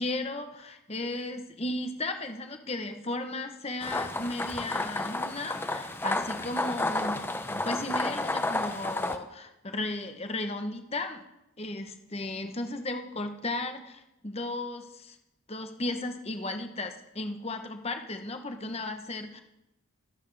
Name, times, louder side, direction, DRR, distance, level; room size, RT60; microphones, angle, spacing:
voice 1, 0.0-11.2 11.6-15.2 15.5-19.4, left 2 dB, 25° left, 6 dB, 0.9 m, -35 dB
sound 1, 3.8-9.2, left 2 dB, 10° left, 0.5 m, -31 dB
22.0 x 8.3 x 3.4 m, 0.91 s
head